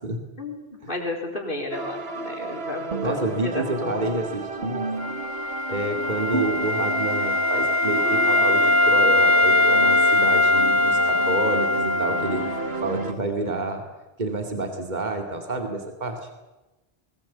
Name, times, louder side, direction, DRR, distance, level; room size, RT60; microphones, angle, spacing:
voice 1, 0.4-4.3 4.6-4.9, left 2 dB, 55° left, 2 dB, 4.5 m, -32 dB
sound 1, 1.7-13.1, right 3 dB, 75° right, 1.9 m, -32 dB
voice 2, 3.0-4.9 5.7-12.5 12.8-13.8 14.2-16.3, right 2 dB, 45° right, 4 dB, 2.6 m, -29 dB
Wind instrument woodwind instrument, 5.0-12.7, left 2 dB, 15° left, 1.3 m, -21 dB
22.0 x 19.0 x 8.5 m, 1.1 s
omnidirectional pair, 1.0 m